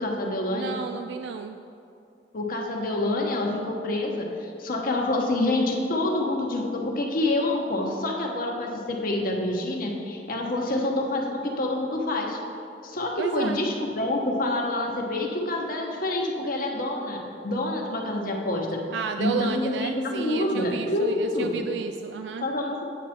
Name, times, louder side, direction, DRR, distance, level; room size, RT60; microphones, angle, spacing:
voice 1, 0.0-0.8 2.3-12.4 12.8-18.8 19.2-21.6 22.4-22.8, left 2 dB, 55° left, 0 dB, 1.2 m, -27 dB
voice 2, 0.5-1.6 13.2-13.6 18.9-22.5, right 5 dB, 75° right, 7 dB, 0.3 m, -31 dB
9.0 x 7.5 x 4.4 m, 2.6 s
head